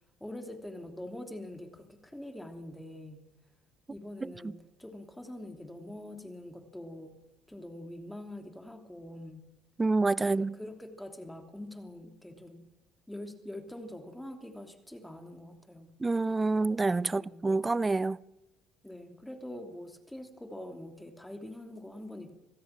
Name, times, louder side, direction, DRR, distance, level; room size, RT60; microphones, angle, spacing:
voice 1, 0.2-3.3 3.9-7.2 7.5-9.5 10.2-12.6 13.1-15.9 17.0-17.5 18.8-22.3, left 1 dB, 5° left, 3.1 m, -44 dB
voice 2, 9.8-10.6 16.0-18.2, right 3 dB, 20° right, 0.6 m, -27 dB
26.5 x 17.5 x 6.0 m
supercardioid pair, 75°, 0 cm